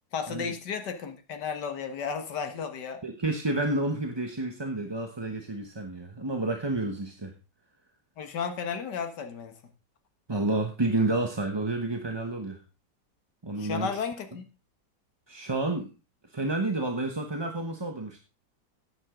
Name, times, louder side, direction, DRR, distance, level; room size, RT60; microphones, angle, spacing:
voice 1, 0.1-3.0 8.2-9.6 13.6-14.4, left 6 dB, 75° left, 7 dB, 2.1 m, -33 dB
voice 2, 3.0-7.3 10.3-12.6 13.4-13.9 15.3-15.9 16.3-18.2, right 2 dB, 20° right, 4 dB, 0.9 m, -30 dB
14.0 x 9.8 x 3.8 m, 0.31 s
omnidirectional pair, 1.8 m